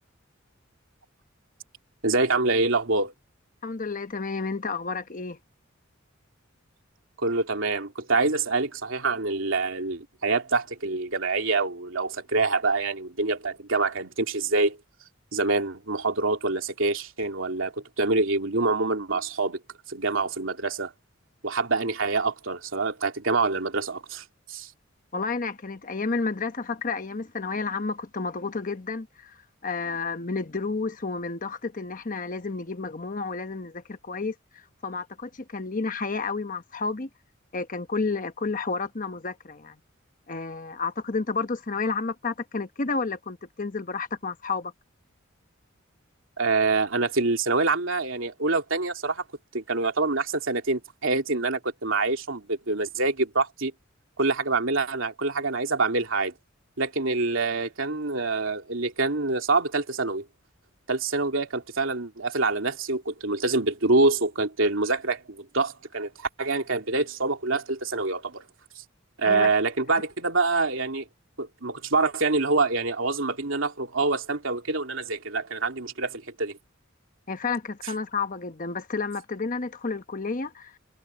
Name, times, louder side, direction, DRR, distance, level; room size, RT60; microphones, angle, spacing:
voice 1, 2.0-3.1 7.2-14.8 15.3-19.6 19.9-20.9 21.4-24.7 46.4-49.2 49.5-53.7 54.2-56.3 56.8-60.2 60.9-68.4 69.2-71.1 71.4-76.6, right 3 dB, 70° right, 3.1 m, -26 dB
voice 2, 3.6-5.4 25.1-29.4 29.6-37.1 37.5-39.7 40.3-44.7 69.2-69.5 69.9-70.0 77.3-80.7, left 4 dB, 40° left, 1.1 m, -31 dB
head